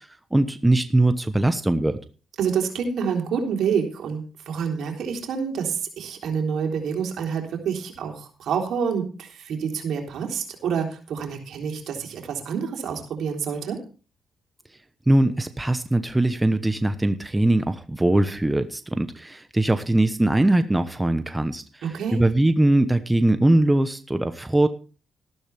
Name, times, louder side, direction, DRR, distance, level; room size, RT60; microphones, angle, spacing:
voice 1, 0.3-2.0 15.1-21.6 22.1-24.7, right 1 dB, 10° right, 10 dB, 1.0 m, -21 dB
voice 2, 2.4-13.8 21.8-22.2, right 6 dB, 75° right, 3 dB, 3.6 m, -27 dB
13.5 x 12.5 x 3.5 m, 0.36 s
cardioid pair, 75°, 0 cm